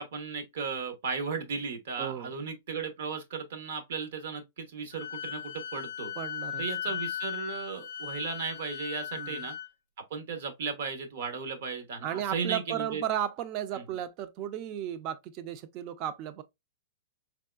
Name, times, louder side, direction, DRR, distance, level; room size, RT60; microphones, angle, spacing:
voice 1, 0.0-6.1 6.6-9.5 10.0-13.0 13.8-13.9, right 5 dB, 65° right, 1.0 m, -35 dB
voice 2, 2.0-2.4 6.2-6.6 9.2-9.4 12.0-16.4, right 10 dB, 30° right, 0.4 m, -34 dB
Wind instrument woodwind instrument, 4.9-9.7, left 10 dB, 65° left, 0.4 m, -37 dB
3.5 x 3.0 x 2.3 m
supercardioid pair, 170°, 0 cm